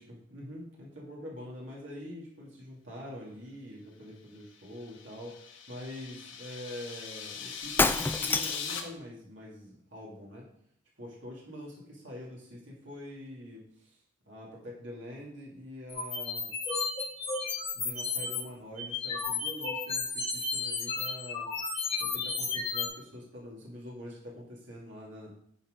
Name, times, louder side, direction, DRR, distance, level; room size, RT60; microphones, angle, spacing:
voice 1, 0.0-10.5 11.0-16.5 17.7-21.5 22.0-25.3, left 1 dB, 70° right, -4 dB, 2.4 m, -45 dB
sound 1, 4.6-8.8, left 6 dB, 85° left, 1.4 m, -40 dB
Shatter, 7.6-8.8, left 3 dB, 10° left, 0.3 m, -27 dB
sound 2, 15.9-18.4 18.8-22.9, left 4 dB, 30° left, 2.7 m, -33 dB
10.5 x 4.4 x 5.1 m, 0.66 s
head